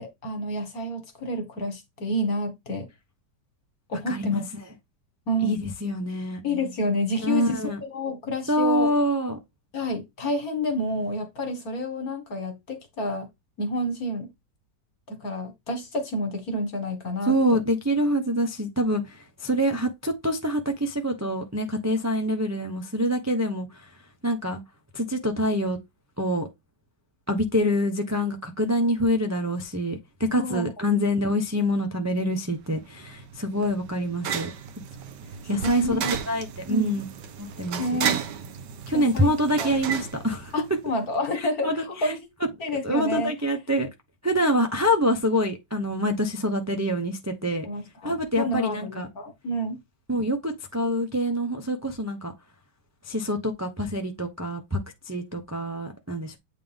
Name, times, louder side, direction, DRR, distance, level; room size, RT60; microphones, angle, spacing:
voice 1, 0.0-2.9 3.9-4.4 5.3-5.6 6.4-8.9 9.7-13.3 13.6-14.3 15.1-17.6 30.3-30.7 35.5-36.1 36.7-36.9 37.8-38.2 38.9-39.3 39.6-39.7 40.5-42.2 42.6-43.3 47.7-49.8, equal, 55° left, 2.1 m, -29 dB
voice 2, 4.1-4.4 5.4-6.4 7.2-7.8 8.5-9.4 17.2-24.0 24.2-24.6 24.9-25.8 26.2-26.5 27.3-34.5 35.5-36.0 36.3-37.1 37.4-38.0 38.9-40.5 41.3-42.1 42.8-43.9 44.2-47.7 48.0-49.1 50.1-52.3 53.0-54.8 55.0-56.4, equal, 15° right, 0.6 m, -26 dB
sound 1, 32.7-41.0, right 8 dB, 80° right, 1.4 m, -34 dB
8.5 x 3.7 x 3.5 m
omnidirectional pair, 1.9 m